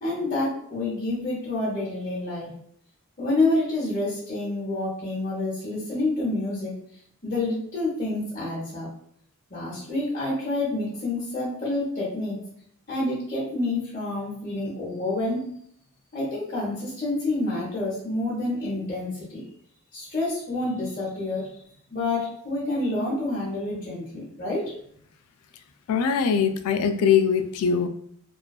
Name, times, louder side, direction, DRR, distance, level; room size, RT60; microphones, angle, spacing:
voice 1, 0.0-2.5 3.2-6.7 7.2-8.9 9.5-12.4 12.9-15.4 16.1-19.4 19.9-21.6 21.9-24.7, left 2 dB, 35° left, -9 dB, 0.8 m, -28 dB
voice 2, 25.9-27.9, left 7 dB, 85° left, 12 dB, 0.3 m, -22 dB
2.4 x 2.2 x 2.3 m, 0.65 s
head